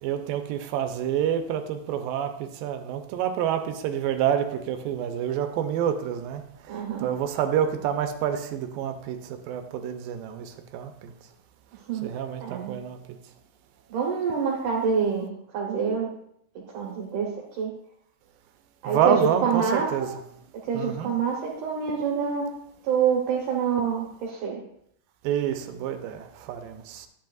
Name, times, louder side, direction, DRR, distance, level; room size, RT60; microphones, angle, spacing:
voice 1, 0.0-11.1 12.0-13.2 18.9-20.1 20.7-21.1 25.2-27.1, right 9 dB, 85° right, 2.4 m, -28 dB
voice 2, 6.7-7.1 11.7-12.1 12.4-12.7 13.9-16.1 16.7-17.7 18.8-20.1 20.6-22.6 22.8-24.6, right 6 dB, 70° right, 2.4 m, -26 dB
10.5 x 8.8 x 2.4 m
omnidirectional pair, 4.0 m